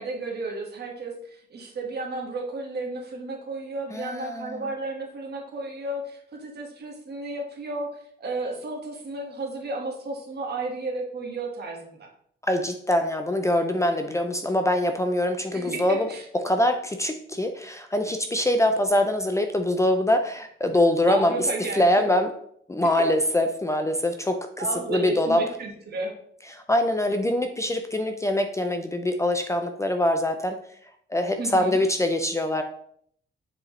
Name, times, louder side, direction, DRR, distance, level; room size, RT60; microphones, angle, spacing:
voice 1, 0.0-7.9 8.2-12.1 15.5-16.2 21.1-22.1 23.0-23.1 24.6-26.1 31.3-31.8, right 2 dB, 55° right, 1 dB, 1.6 m, -33 dB
voice 2, 3.9-4.6 12.5-16.1 16.4-21.5 21.7-22.3 22.7-25.4 26.5-30.6 31.1-32.6, left 1 dB, 15° left, 6 dB, 0.5 m, -24 dB
7.4 x 4.8 x 3.2 m, 0.65 s
wide cardioid pair, 145°, 20 cm